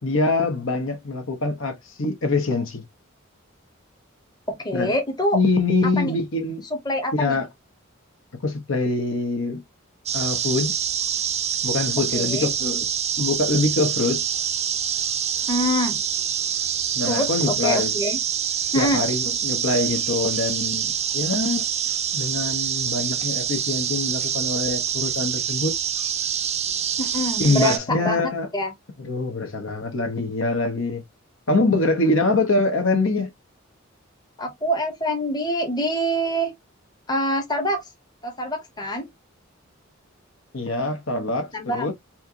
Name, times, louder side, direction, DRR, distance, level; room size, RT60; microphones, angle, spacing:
voice 1, 0.0-2.8 4.7-4.9 5.3-6.7 7.1-7.5 8.4-9.6 10.1-10.8 11.6-12.9 13.2-14.2 16.9-17.9 18.7-21.6 22.1-25.7 27.4-28.5 29.0-31.0 31.5-33.3 40.5-41.9, left 3 dB, 75° left, 1.1 m, -24 dB
voice 2, 4.5-5.4 6.0-6.2 6.7-7.4 12.1-12.5 15.5-16.0 17.1-18.2 18.7-19.1 27.0-28.2 28.5-28.7 34.4-36.5 37.1-37.8 38.2-39.1 41.5-41.9, equal, 20° left, 0.9 m, -25 dB
sound 1, 10.1-27.8, right 9 dB, 30° right, 0.5 m, -26 dB
4.4 x 2.3 x 2.7 m
head